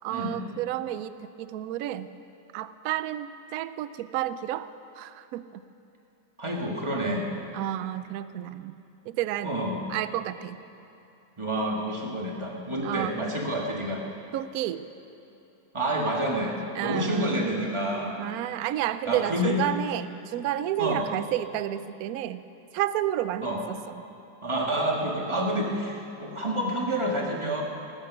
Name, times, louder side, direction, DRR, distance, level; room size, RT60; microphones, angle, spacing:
voice 1, 0.0-2.1 2.5-4.7 5.0-5.6 7.5-8.7 9.1-9.5 9.9-10.6 12.8-13.1 14.3-14.9 16.7-17.4 18.2-22.4 22.7-24.0, right 12 dB, 70° right, 13 dB, 0.9 m, -31 dB
voice 2, 6.4-7.3 9.4-9.8 11.4-14.0 15.7-18.2 19.1-19.5 20.8-21.1 23.4-23.6 24.4-27.6, right 1 dB, 15° right, -1 dB, 1.7 m, -28 dB
20.5 x 9.8 x 6.3 m, 2.8 s
omnidirectional pair, 2.0 m